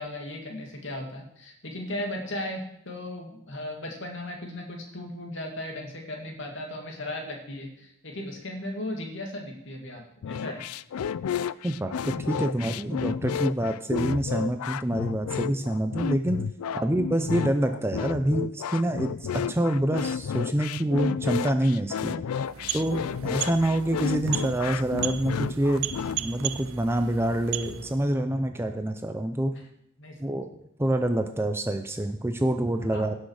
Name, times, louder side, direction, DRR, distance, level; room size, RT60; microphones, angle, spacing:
voice 1, 0.0-10.6 16.7-16.8 30.0-30.4 32.9-33.0, left 1 dB, 55° left, 1 dB, 2.3 m, -36 dB
sound 1, 10.2-26.2, left 7 dB, 80° left, 0.4 m, -31 dB
voice 2, 11.6-16.4 16.8-22.2 22.7-25.8 26.2-29.5 30.2-30.5 30.8-33.2, right 1 dB, 10° right, 6 dB, 0.5 m, -26 dB
sound 2, 22.3-28.1, right 11 dB, 70° right, 0.5 m, -36 dB
16.5 x 6.4 x 4.9 m, 0.76 s
head